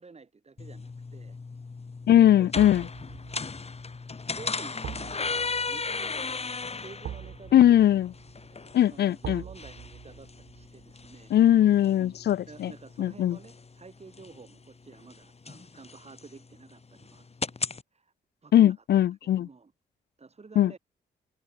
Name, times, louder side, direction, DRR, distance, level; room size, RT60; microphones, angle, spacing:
voice 1, 0.0-1.4 2.2-2.9 4.3-6.3 6.7-7.8 8.5-11.3 12.0-12.2 12.5-17.6 17.9-18.1 18.4-19.7 20.2-20.8, right 4 dB, 35° right, 5.3 m, -50 dB
sound 1, 0.6-17.8, left 4 dB, 35° left, 2.7 m, -37 dB
sound 2, 0.8-1.1 2.5-13.5 13.9-14.0, right 10 dB, 80° right, 3.7 m, -45 dB
voice 2, 2.1-2.8 7.5-8.1 8.7-9.4 11.3-12.7 13.0-13.4 18.5-19.5 20.6-20.8, left 11 dB, 70° left, 0.5 m, -20 dB
cardioid pair, 65°, 18 cm